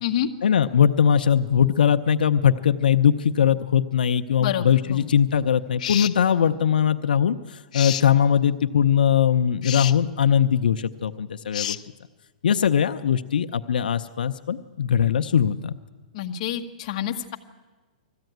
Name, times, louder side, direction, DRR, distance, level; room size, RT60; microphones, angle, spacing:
voice 1, 0.4-11.8 12.4-15.8, left 8 dB, 90° left, 8 dB, 0.8 m, -21 dB
voice 2, 4.4-5.1 16.1-17.4, left 10 dB, 40° left, 4 dB, 1.3 m, -28 dB
sound 1, 5.8-6.2 7.7-8.1 9.6-10.0 11.5-11.8, left 11 dB, 55° left, 0.6 m, -29 dB
20.5 x 14.5 x 9.3 m, 1.2 s
hypercardioid pair, 165°, 5 cm